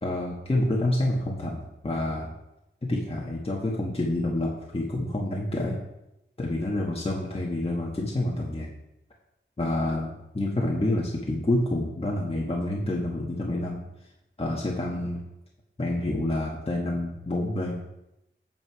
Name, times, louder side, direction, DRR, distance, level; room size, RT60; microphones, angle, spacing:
voice 1, 0.0-2.3 2.8-5.8 6.4-8.7 9.6-13.8 14.4-15.2 15.8-17.8, left 1 dB, 30° left, -2 dB, 1.4 m, -28 dB
8.9 x 8.0 x 4.7 m, 0.89 s
wide cardioid pair, 95°, 21 cm